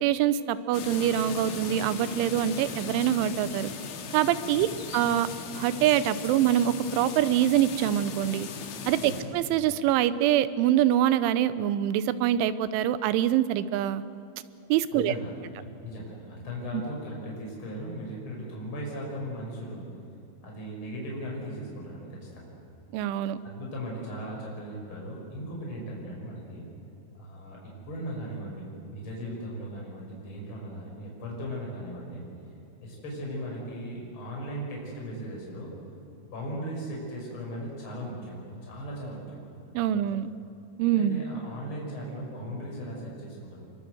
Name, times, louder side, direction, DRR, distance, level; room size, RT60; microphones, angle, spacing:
voice 1, 0.0-3.7 4.1-4.7 4.9-5.3 5.6-8.5 8.9-14.0 14.7-15.1 16.7-16.8 22.9-23.4 39.7-40.3 40.8-41.2, right 11 dB, 90° right, 14 dB, 3.3 m, -24 dB
sound 1, 0.7-9.2, left 5 dB, 70° left, 4.1 m, -38 dB
voice 2, 14.9-15.4 15.8-19.9 20.4-22.5 23.4-26.6 27.2-32.2 32.8-35.7 36.2-39.5 39.8-40.3 41.0-43.7, equal, 25° left, -2 dB, 6.2 m, -38 dB
25.5 x 23.0 x 7.9 m, 2.7 s
omnidirectional pair, 5.3 m